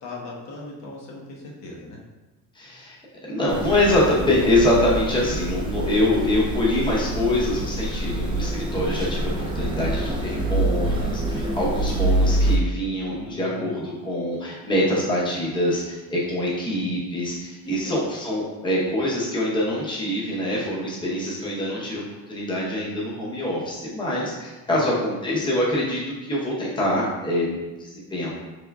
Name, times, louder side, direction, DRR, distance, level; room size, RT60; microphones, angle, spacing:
voice 1, 0.0-2.0 13.1-13.9 17.6-18.0 24.7-24.9, left 2 dB, 60° left, -2 dB, 1.1 m, -39 dB
voice 2, 2.5-3.0 3.2-22.0 22.3-28.3, left 1 dB, 15° left, -5 dB, 0.9 m, -24 dB
sound 1, 3.5-12.6, right 1 dB, 15° right, 0.4 m, -26 dB
4.9 x 3.5 x 2.3 m, 1.1 s
cardioid pair, 155°, 32 cm